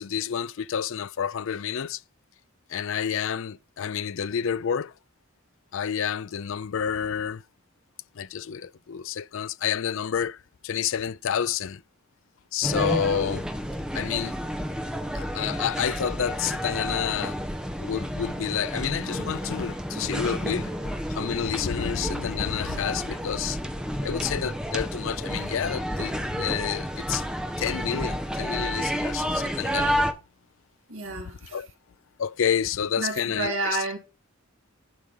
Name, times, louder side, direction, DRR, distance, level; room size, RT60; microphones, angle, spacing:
voice 1, 0.0-2.0 2.7-4.9 5.7-7.4 8.1-11.8 12.5-13.5 13.9-14.4 15.1-17.4 17.8-23.7 24.0-27.3 27.6-30.0 31.1-31.2 31.5-31.7 32.2-33.8, left 8 dB, 65° left, 0.4 m, -29 dB
sound 1, 12.6-30.1, equal, 5° right, 1.2 m, -30 dB
voice 2, 30.9-31.6 33.0-34.0, right 3 dB, 65° right, 3.6 m, -30 dB
11.5 x 4.8 x 5.3 m
head